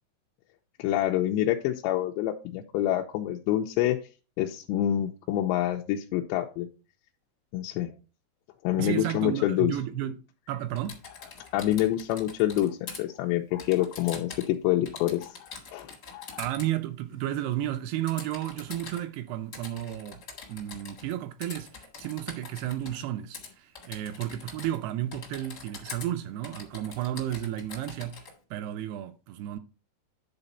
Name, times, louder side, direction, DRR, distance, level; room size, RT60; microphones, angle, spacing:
voice 1, 0.8-4.0 4.4-6.7 7.5-7.9 8.6-9.7 11.5-16.4, left 13 dB, 85° left, 2.8 m, -27 dB
voice 2, 8.8-10.2 10.5-11.0 16.4-20.2 20.5-29.6, right 12 dB, 80° right, 2.4 m, -33 dB
Typing, 10.8-13.0 13.6-14.6 14.9-16.7 18.1-19.0 19.5-21.1 21.4-23.0 23.3-23.5 23.7-24.8 25.1-26.1 26.4-28.3, left 4 dB, 50° left, 1.2 m, -44 dB
9.9 x 4.0 x 5.5 m
omnidirectional pair, 5.1 m